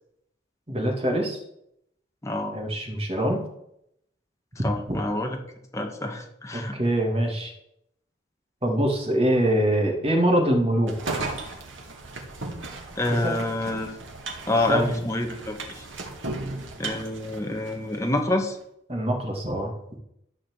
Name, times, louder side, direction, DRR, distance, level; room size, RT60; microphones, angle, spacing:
voice 1, 0.7-1.4 2.5-3.4 4.9-5.0 6.5-7.5 8.6-11.2 13.2-13.4 14.7-15.0 18.9-19.7, right 1 dB, 30° right, 2 dB, 2.4 m, -24 dB
voice 2, 2.2-2.5 4.6-5.4 5.7-6.8 12.9-13.9 14.5-15.8 16.8-18.6, left 1 dB, 15° left, 2 dB, 1.6 m, -27 dB
sound 1, 10.9-18.1, right 3 dB, 85° right, 1.9 m, -36 dB
12.5 x 5.1 x 8.0 m, 0.78 s
head